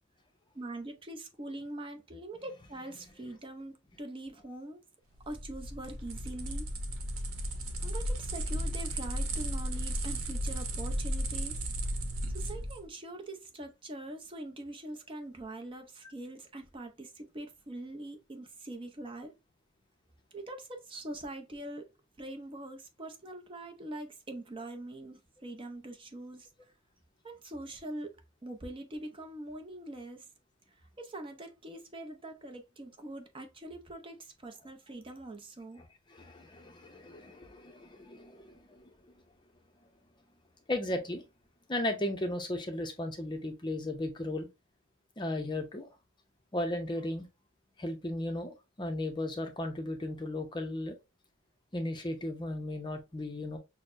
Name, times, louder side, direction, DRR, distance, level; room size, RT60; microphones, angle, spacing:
voice 1, 0.5-4.8 5.3-6.7 7.8-11.6 12.3-19.3 20.3-21.9 22.2-26.5 27.2-30.3 31.0-35.8, right 1 dB, 25° right, 0.6 m, -43 dB
sound 1, 5.2-12.8, right 1 dB, 85° right, 0.8 m, -34 dB
voice 2, 35.8-39.1 40.7-41.2 41.7-44.5 45.2-45.9 46.5-47.3 47.8-51.0 51.7-53.6, left 1 dB, 20° left, 0.6 m, -36 dB
6.2 x 2.1 x 2.5 m
head